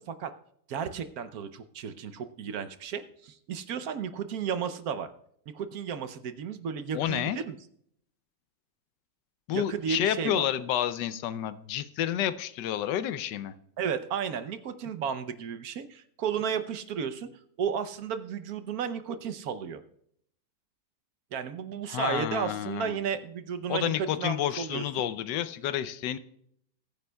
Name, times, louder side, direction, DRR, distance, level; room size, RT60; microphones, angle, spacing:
voice 1, 0.7-5.1 5.5-7.5 9.5-10.4 13.8-17.3 17.6-19.8 21.3-24.8, right 7 dB, 65° right, 10 dB, 1.2 m, -33 dB
voice 2, 6.9-7.4 9.5-13.5 21.9-23.0 23.7-26.2, left 11 dB, 85° left, 13 dB, 1.3 m, -30 dB
21.0 x 9.5 x 2.3 m, 0.69 s
omnidirectional pair, 1.8 m